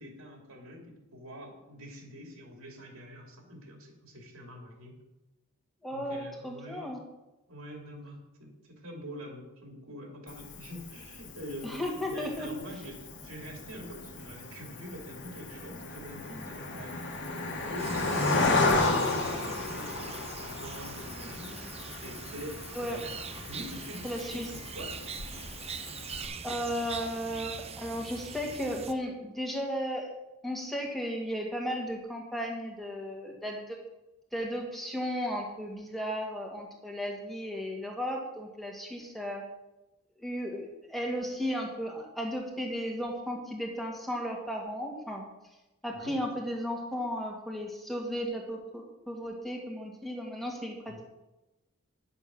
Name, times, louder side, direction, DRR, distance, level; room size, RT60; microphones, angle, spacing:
voice 1, 0.0-5.0 5.9-6.9 7.5-17.1 17.7-25.0 45.9-46.2 50.9-51.0, equal, 70° right, 1 dB, 2.7 m, -44 dB
voice 2, 5.8-7.0 11.6-12.5 22.8-23.0 24.0-24.5 26.4-30.1 30.4-33.8 34.3-39.5 40.2-45.2 45.8-50.9, equal, ahead, 0 dB, 2.0 m, -35 dB
Cricket, 10.3-26.3, left 3 dB, 55° left, 1.6 m, -34 dB
sound 1, 17.8-28.9, right 6 dB, 30° right, 0.6 m, -42 dB
10.0 x 7.0 x 6.2 m, 0.99 s
head